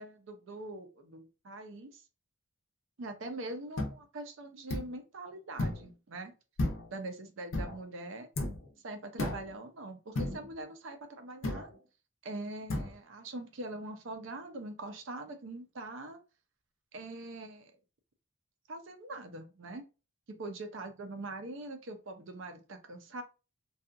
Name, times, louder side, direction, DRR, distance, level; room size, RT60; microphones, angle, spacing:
voice 1, 0.0-2.0 3.0-6.3 6.9-8.3 8.8-11.7 12.2-16.2 16.9-17.7 18.7-19.8 20.3-23.2, right 2 dB, 60° right, 0.5 m, -43 dB
sound 1, 3.8-3.9 4.7-4.9 5.6-5.9 6.6-7.0 7.5-7.8 8.4-8.7 9.2-9.5 10.2-10.5 11.4-11.7 12.7-12.9, left 1 dB, 65° left, 0.5 m, -33 dB
2.7 x 2.3 x 2.3 m
head